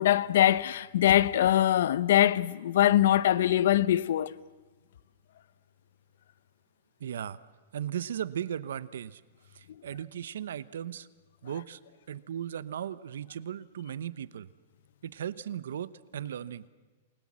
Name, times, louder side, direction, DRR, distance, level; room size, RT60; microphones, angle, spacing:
voice 1, 0.0-4.3, left 12 dB, 65° left, 0.8 m, -23 dB
voice 2, 7.0-7.4 7.7-9.2 9.5-11.1 11.4-11.8 12.1-14.5 15.0-16.7, right 9 dB, 85° right, 0.8 m, -37 dB
28.0 x 21.0 x 7.5 m
supercardioid pair, 160°, 0 cm